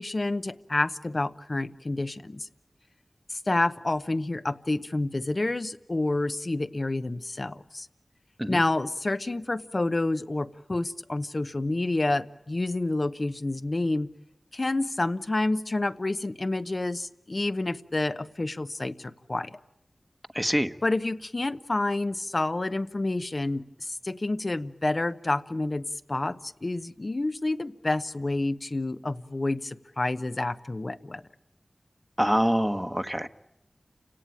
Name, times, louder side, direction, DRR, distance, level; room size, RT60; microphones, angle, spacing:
voice 1, 0.0-2.5 3.3-7.9 8.5-14.1 14.5-19.5 20.8-31.2, left 2 dB, 50° left, 11 dB, 1.0 m, -29 dB
voice 2, 20.3-20.7 32.2-33.3, equal, 5° right, 10 dB, 1.2 m, -25 dB
29.5 x 17.5 x 9.0 m, 0.93 s
cardioid pair, 40°, 0 cm